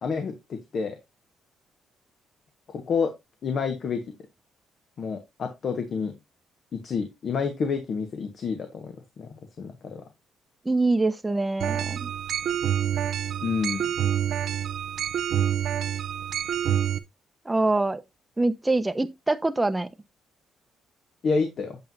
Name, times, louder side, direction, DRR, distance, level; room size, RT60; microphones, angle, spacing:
voice 1, 0.0-1.0 2.7-3.1 3.4-4.0 5.0-6.1 6.7-9.3 9.6-10.0 13.4-13.8 21.2-21.8, left 5 dB, 55° left, 1.4 m, -29 dB
voice 2, 10.6-12.1 17.4-18.0 18.4-19.9, right 2 dB, 15° right, 0.9 m, -24 dB
sound 1, 11.6-17.0, right 10 dB, 70° right, 0.7 m, -27 dB
8.7 x 7.5 x 2.7 m
cardioid pair, 90°, 0 cm